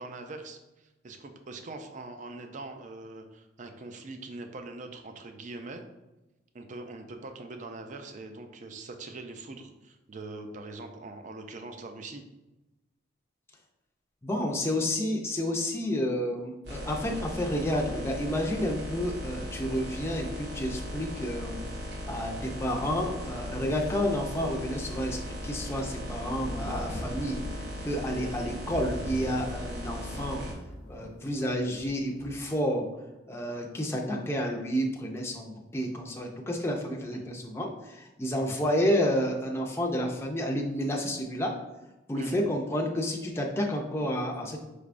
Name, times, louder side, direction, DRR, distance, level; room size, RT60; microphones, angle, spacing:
voice 1, 0.0-5.8 6.5-12.2 28.2-28.5 37.1-37.2 42.1-42.5, right 2 dB, 45° right, 6 dB, 0.4 m, -42 dB
voice 2, 14.2-21.6 22.1-27.4 27.8-30.5 30.9-32.9 33.3-41.5 42.1-44.6, equal, 15° left, 0 dB, 0.5 m, -30 dB
sound 1, 16.6-30.5, equal, 65° right, 1.4 m, -38 dB
sound 2, 26.4-32.4, equal, 65° left, 0.7 m, -43 dB
5.0 x 3.4 x 2.5 m, 1.0 s
head